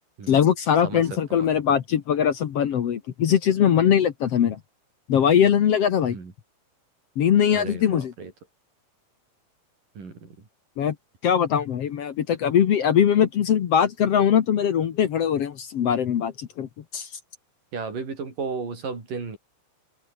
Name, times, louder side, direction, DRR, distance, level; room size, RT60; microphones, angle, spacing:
voice 1, 0.3-4.6 5.1-6.2 7.2-8.1 10.8-11.0 11.2-17.1, left 8 dB, 55° left, 2.1 m, -21 dB
voice 2, 7.5-8.3 10.0-10.3 17.7-19.4, right 5 dB, 80° right, 7.2 m, -34 dB
omnidirectional pair, 3.8 m